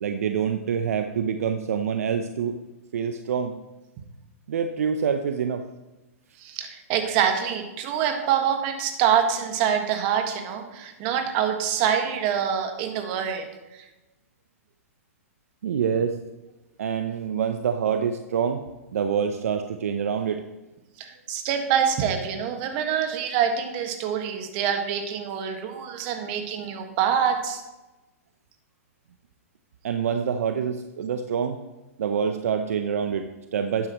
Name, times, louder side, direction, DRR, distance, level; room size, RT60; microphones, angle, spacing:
voice 1, 0.0-2.6 2.9-3.5 4.5-5.6 15.6-16.2 16.8-18.6 18.9-20.4 29.8-31.6 32.0-33.9, right 7 dB, 75° right, 7 dB, 0.7 m, -26 dB
voice 2, 6.4-13.8 21.0-27.6, right 8 dB, 45° right, 5 dB, 1.6 m, -25 dB
12.0 x 9.4 x 3.0 m, 1.0 s
hypercardioid pair, 125°, 8 cm